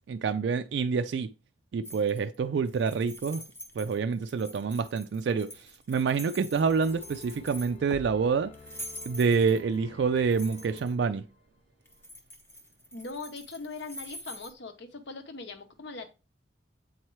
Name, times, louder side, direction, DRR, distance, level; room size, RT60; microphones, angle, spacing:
voice 1, 0.1-1.3 1.7-3.4 3.8-8.5 9.1-11.2, right 5 dB, 60° right, 0.3 m, -27 dB
sound 1, 1.8-2.4 2.7-7.9 8.5-9.8 10.2-10.9 11.9-14.5, equal, 10° left, 0.7 m, -45 dB
sound 2, 6.5-11.0 11.3-11.4, left 3 dB, 30° left, 0.3 m, -49 dB
voice 2, 12.9-16.1, left 3 dB, 60° left, 0.9 m, -41 dB
7.9 x 4.4 x 3.1 m
head